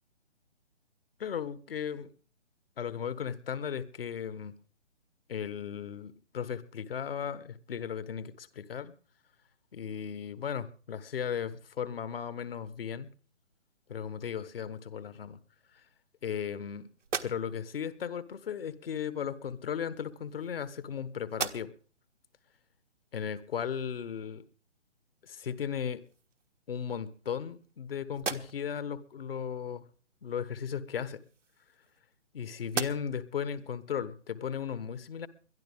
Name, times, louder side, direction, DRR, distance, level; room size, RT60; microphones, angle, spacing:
voice 1, 1.2-2.1 2.8-4.5 5.3-8.9 9.7-13.1 13.9-15.4 15.7-15.8 16.2-16.9 17.2-21.7 23.1-24.4 25.2-26.0 26.7-29.9 30.2-31.2 32.3-35.3, left 7 dB, 50° left, 1.4 m, -36 dB
sound 1, 17.0-17.8 19.0-19.1 20.1-20.9 21.3-22.0 22.5-22.6 25.3-25.4 25.8-26.5 27.1-27.8 28.1-28.8 30.8-32.3 32.7-33.3, right 5 dB, 85° right, 1.4 m, -40 dB
22.0 x 12.5 x 3.6 m
figure-of-eight pair, 145°, 36 cm